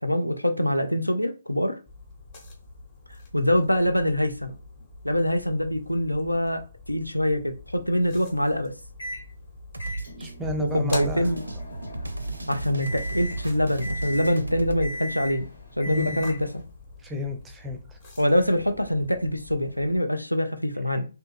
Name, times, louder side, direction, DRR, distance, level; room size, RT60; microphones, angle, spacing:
voice 1, 0.0-1.8 3.3-4.5 5.0-6.6 6.9-8.7 10.6-11.4 12.5-15.5 15.8-16.6 18.2-21.1, left 1 dB, 90° left, 0.5 m, -24 dB
sound 1, 1.9-20.0, left 2 dB, 30° left, 1.0 m, -45 dB
Microwave oven, 9.0-9.3 9.8-16.6, equal, 65° left, 1.3 m, -39 dB
sound 2, 9.7-14.9, right 2 dB, 75° right, 0.5 m, -34 dB
voice 2, 10.2-11.3 15.9-16.4 17.0-18.0, left 2 dB, 10° right, 0.5 m, -33 dB
3.4 x 2.7 x 2.5 m
figure-of-eight pair, 140°, 0 cm